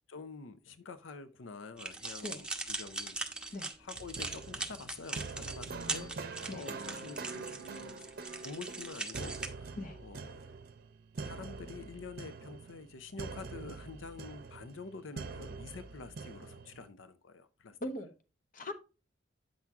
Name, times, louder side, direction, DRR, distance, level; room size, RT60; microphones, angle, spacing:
voice 1, 0.1-3.5 3.8-8.0 8.4-9.8 10.0-10.3 11.2-17.8, left 4 dB, 90° left, 0.6 m, -47 dB
sound 1, 1.8-9.5, right 3 dB, 5° right, 1.0 m, -40 dB
sound 2, 3.9-16.9, right 4 dB, 50° right, 0.7 m, -45 dB
voice 2, 17.8-18.1 18.5-18.7, left 1 dB, 45° left, 0.9 m, -40 dB
8.6 x 6.0 x 3.6 m
head